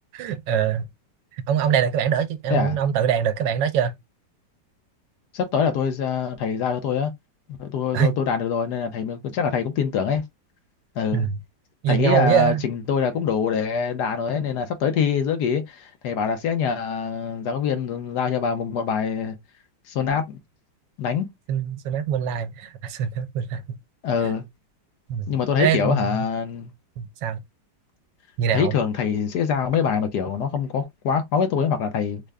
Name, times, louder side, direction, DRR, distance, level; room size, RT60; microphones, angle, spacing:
voice 1, 0.1-0.9 1.5-3.9 7.9-8.2 11.1-11.4 11.8-12.7 21.5-23.8 24.2-24.3 25.1-25.3 25.6-26.3 27.0-27.4 28.4-28.8, right 8 dB, 80° right, 1.2 m, -23 dB
voice 2, 5.3-7.1 7.6-10.2 11.0-11.3 11.9-19.4 19.9-20.4 21.0-21.3 24.0-24.4 25.3-26.7 28.5-32.2, left 6 dB, 70° left, 1.2 m, -24 dB
3.6 x 2.2 x 3.3 m
omnidirectional pair, 2.0 m